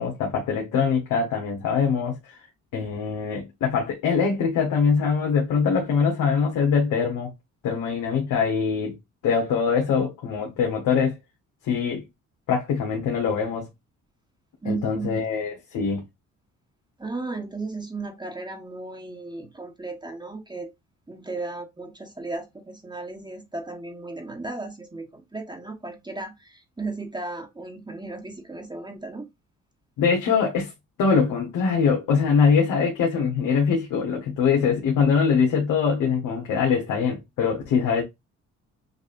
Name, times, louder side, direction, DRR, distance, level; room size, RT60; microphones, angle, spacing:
voice 1, 0.0-2.3 2.7-7.3 7.6-9.0 9.2-11.2 11.6-12.0 12.5-13.7 14.6-16.0 30.0-30.7 31.0-38.0, left 6 dB, 85° left, 1.3 m, -23 dB
voice 2, 14.6-15.2 17.0-20.7 21.1-29.3, right 3 dB, 15° right, 1.2 m, -35 dB
6.8 x 2.6 x 2.5 m
cardioid pair, 90°, 30 cm